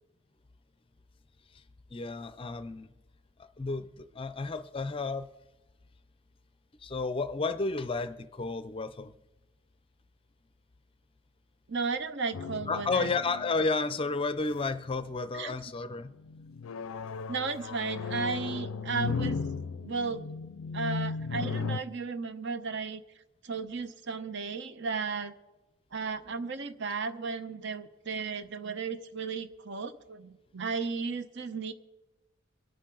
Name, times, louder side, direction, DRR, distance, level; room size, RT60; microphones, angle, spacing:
voice 1, 1.9-2.9 3.4-5.3 6.8-9.1 12.7-16.1, left 3 dB, 25° left, 12 dB, 0.5 m, -32 dB
voice 2, 11.7-13.1 15.3-15.6 17.3-19.4 19.8-20.3 20.7-23.0 23.4-25.3 25.9-31.7, right 4 dB, 55° right, 11 dB, 0.8 m, -34 dB
sound 1, 12.3-14.1 14.7-15.1 15.9-21.8, left 5 dB, 85° left, 0.5 m, -36 dB
23.5 x 8.8 x 3.8 m, 1.1 s
head